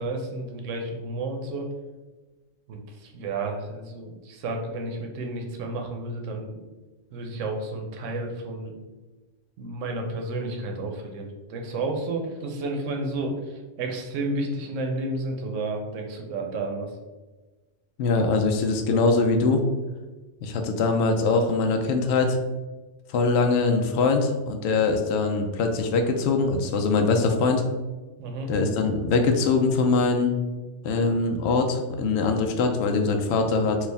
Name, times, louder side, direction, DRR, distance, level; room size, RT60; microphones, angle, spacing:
voice 1, 0.0-1.7 2.7-6.6 7.1-8.8 9.6-17.0 28.2-28.5, right 2 dB, 80° right, 2 dB, 1.0 m, -31 dB
voice 2, 18.0-19.6 20.4-22.4 23.1-27.6 28.5-30.4 30.8-33.8, left 3 dB, 65° left, 4 dB, 0.8 m, -22 dB
4.6 x 2.4 x 3.3 m, 1.2 s
omnidirectional pair, 1.3 m